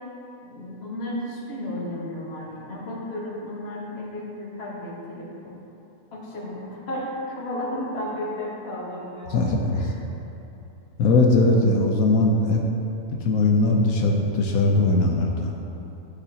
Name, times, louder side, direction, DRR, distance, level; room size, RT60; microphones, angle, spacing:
voice 1, 0.4-5.6 6.1-9.9, left 1 dB, 45° left, -5 dB, 1.5 m, -33 dB
voice 2, 9.3-9.8 11.0-12.6 13.2-15.5, left 2 dB, 75° left, 0 dB, 1.1 m, -20 dB
11.5 x 6.8 x 2.8 m, 2.9 s
omnidirectional pair, 1.5 m